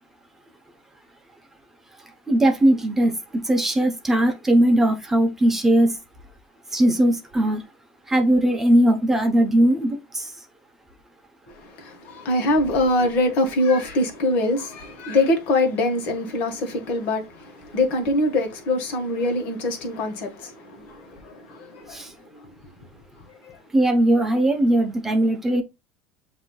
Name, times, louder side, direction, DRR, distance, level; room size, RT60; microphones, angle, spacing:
voice 1, 2.3-6.0 6.7-7.6 8.1-10.3 21.9-22.1 23.7-25.6, right 1 dB, 10° right, 0.8 m, -19 dB
voice 2, 11.5-22.0 22.4-22.5 23.4-23.6, left 2 dB, 55° left, 1.3 m, -24 dB
7.3 x 2.7 x 2.3 m
supercardioid pair, 125°, 3 cm